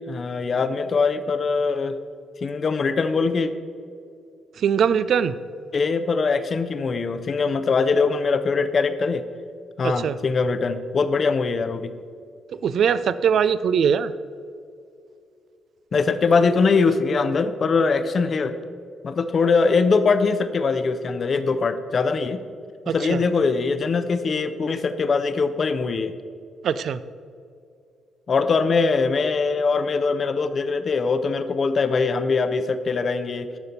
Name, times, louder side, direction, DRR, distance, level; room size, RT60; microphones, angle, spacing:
voice 1, 0.0-1.9 2.4-3.5 5.7-9.2 9.8-11.9 15.9-18.6 19.0-22.4 22.9-26.1 28.3-33.5, left 4 dB, 45° left, 10 dB, 0.8 m, -22 dB
voice 2, 4.6-5.3 9.8-10.2 12.6-14.1 22.9-23.2 26.6-27.0, right 7 dB, 60° right, 15 dB, 0.4 m, -21 dB
16.5 x 6.6 x 4.1 m, 2.4 s
hypercardioid pair, 40°, 0 cm